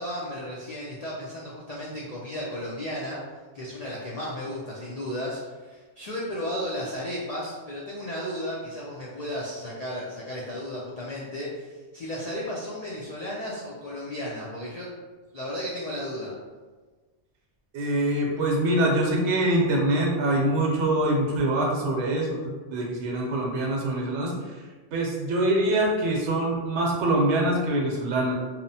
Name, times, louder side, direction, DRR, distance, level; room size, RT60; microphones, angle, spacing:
voice 1, 0.0-3.2 3.5-14.9 15.3-16.3, equal, 70° left, -6 dB, 0.3 m, -34 dB
voice 2, 17.7-24.6 24.9-28.3, right 1 dB, 80° right, -1 dB, 0.9 m, -24 dB
2.8 x 2.0 x 2.7 m, 1.3 s
omnidirectional pair, 1.2 m